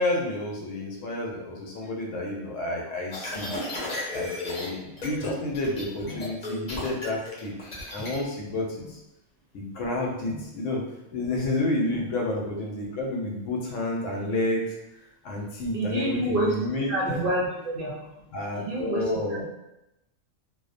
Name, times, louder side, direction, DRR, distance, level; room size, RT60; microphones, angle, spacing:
voice 1, 0.0-3.5 4.1-9.0 9.5-10.8 11.1-14.7 15.2-17.2 18.3-19.4, left 1 dB, 80° left, -1 dB, 0.9 m, -30 dB
sound 1, 3.1-4.7 5.0-5.3 5.5-8.2, left 1 dB, 45° left, 0.6 m, -34 dB
voice 2, 15.7-16.5 16.9-18.1 18.5-19.4, right 1 dB, 60° right, -5 dB, 0.6 m, -28 dB
2.5 x 2.1 x 2.4 m, 0.89 s
omnidirectional pair, 1.3 m